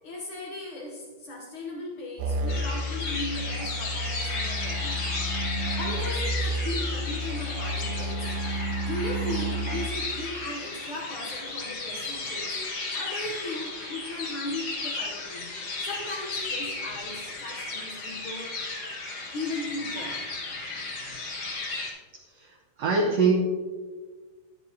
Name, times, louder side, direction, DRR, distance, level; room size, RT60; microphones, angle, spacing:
voice 1, 0.0-5.1 5.7-8.5 8.9-12.7 12.9-18.7 19.3-20.3, left 2 dB, 75° left, -1 dB, 1.2 m, -37 dB
sound 1, 2.2-9.9, equal, 85° right, 2.2 m, -31 dB
sound 2, 2.5-21.9, left 3 dB, 50° left, 2.2 m, -34 dB
voice 2, 22.8-23.4, right 4 dB, 65° right, -1 dB, 1.6 m, -22 dB
10.5 x 9.8 x 2.8 m, 1.4 s
omnidirectional pair, 3.7 m